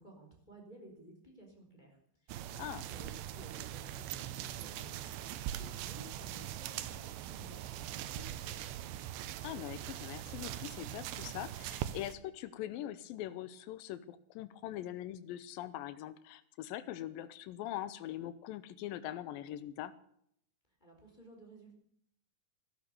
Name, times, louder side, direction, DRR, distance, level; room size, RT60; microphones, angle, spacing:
voice 1, 0.0-2.0 2.2-8.8 20.8-21.7, right 1 dB, 10° left, 1 dB, 3.5 m, -55 dB
sound 1, 2.3-12.1, right 12 dB, 90° right, 3.1 m, -42 dB
voice 2, 9.4-19.9, left 12 dB, 85° left, 13 dB, 2.0 m, -42 dB
13.5 x 12.5 x 6.8 m, 0.69 s
omnidirectional pair, 4.9 m